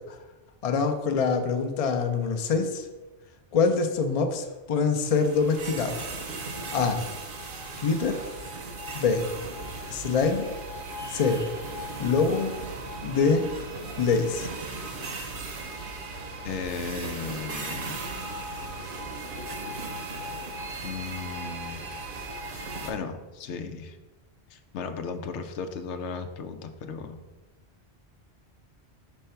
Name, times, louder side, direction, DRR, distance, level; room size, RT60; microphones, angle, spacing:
voice 1, 0.6-2.9 3.5-6.0 6.7-7.0 7.8-8.2 8.9-9.3 9.9-10.5 11.1-11.5 12.0-12.6 13.0-13.5 14.0-14.5, left 5 dB, 45° left, 6 dB, 0.5 m, -24 dB
sound 1, 5.0-22.9, right 2 dB, 55° right, 0.9 m, -37 dB
voice 2, 16.4-18.0 20.8-21.8 22.5-24.0 24.5-27.2, left 5 dB, 90° left, 8 dB, 0.9 m, -36 dB
5.3 x 3.3 x 5.6 m, 1.1 s
omnidirectional pair, 1.1 m